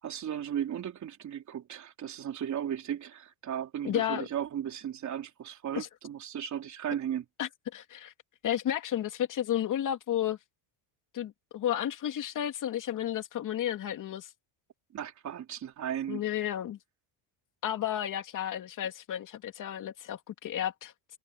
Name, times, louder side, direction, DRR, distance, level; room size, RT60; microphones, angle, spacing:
voice 1, 0.0-7.2 14.9-16.2, right 9 dB, 35° right, 3.7 m, -36 dB
voice 2, 3.8-4.3 5.7-5.9 7.4-8.1 8.4-10.4 11.1-14.3 16.1-16.8 17.6-20.9, left 11 dB, 40° left, 2.7 m, -32 dB
cardioid pair, 160°, 48 cm